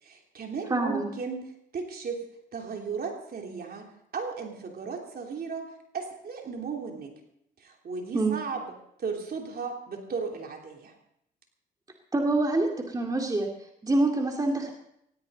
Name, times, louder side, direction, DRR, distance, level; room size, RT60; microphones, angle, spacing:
voice 1, 0.0-1.5 1.7-2.2 2.5-3.9 4.1-5.7 5.9-7.1 7.6-8.7 9.0-10.9, right 5 dB, 50° right, 2 dB, 3.2 m, -35 dB
voice 2, 0.7-1.1 8.1-8.4 12.1-13.5 13.8-14.7, right 2 dB, 20° right, 1 dB, 2.1 m, -25 dB
18.0 x 16.0 x 4.0 m, 0.75 s
cardioid pair, 90°, 20 cm